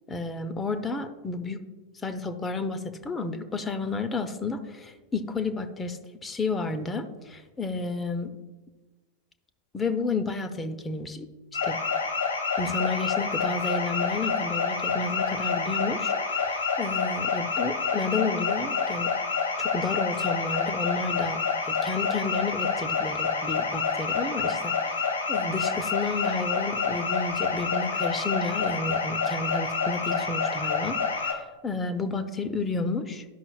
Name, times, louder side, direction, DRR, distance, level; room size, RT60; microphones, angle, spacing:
voice 1, 0.1-1.6 2.0-8.3 9.7-11.3 11.6-11.8 12.6-19.1 19.6-33.2, left 3 dB, 15° left, 9 dB, 0.6 m, -31 dB
sound 1, 11.5-31.3, left 5 dB, 75° left, 1.3 m, -28 dB
11.5 x 5.5 x 2.3 m, 1.2 s
figure-of-eight pair, 90°, 0 cm